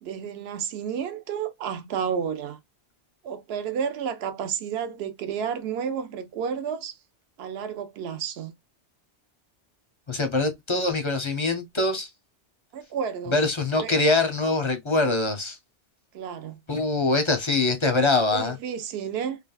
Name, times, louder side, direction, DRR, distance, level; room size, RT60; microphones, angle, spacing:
voice 1, 0.0-2.6 3.2-6.9 7.4-8.5 12.7-13.4 13.8-13.9 16.1-16.6 18.3-19.4, right 7 dB, 65° right, 0.8 m, -31 dB
voice 2, 10.1-12.1 13.3-15.6 16.7-18.5, left 2 dB, 35° left, 0.5 m, -23 dB
3.3 x 2.3 x 2.2 m
omnidirectional pair, 1.2 m